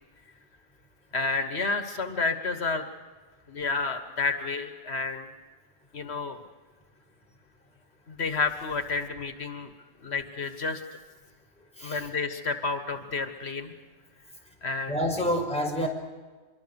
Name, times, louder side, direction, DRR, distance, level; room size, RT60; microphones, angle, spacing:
voice 1, 1.1-2.9 3.5-5.3 5.9-6.4 8.1-9.7 10.0-10.8 11.8-13.7 14.6-14.9, left 4 dB, 85° left, 8 dB, 1.8 m, -30 dB
voice 2, 11.8-12.1 14.9-15.9, equal, 5° left, 0 dB, 5.4 m, -28 dB
26.0 x 24.0 x 7.1 m, 1.3 s
omnidirectional pair, 1.1 m